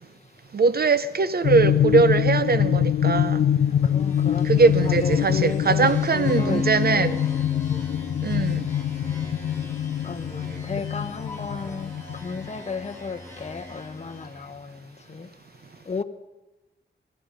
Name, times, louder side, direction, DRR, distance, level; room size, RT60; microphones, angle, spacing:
voice 1, 0.5-3.4 4.4-7.2 8.2-8.7, right 4 dB, 50° right, 0.6 m, -21 dB
sound 1, 1.4-12.6, left 9 dB, 80° left, 0.4 m, -24 dB
sound 2, 3.6-14.5, left 3 dB, 10° left, 3.8 m, -37 dB
voice 2, 3.9-4.5 4.8-7.3 10.0-11.9 12.2-14.7 15.1-15.3 15.9-16.0, left 4 dB, 35° left, 0.9 m, -34 dB
22.0 x 10.5 x 5.2 m
wide cardioid pair, 85°, 20 cm